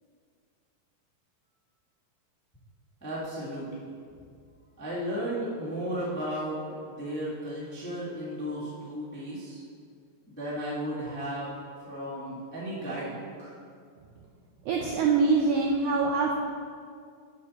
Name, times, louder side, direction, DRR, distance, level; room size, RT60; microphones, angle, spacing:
voice 1, 3.0-3.9 4.8-6.6 6.9-9.6 10.3-11.5 11.8-13.5, equal, 10° left, -9 dB, 0.5 m, -34 dB
voice 2, 14.6-16.4, right 4 dB, 90° right, 0 dB, 1.7 m, -24 dB
9.4 x 6.2 x 4.2 m, 2.2 s
omnidirectional pair, 4.2 m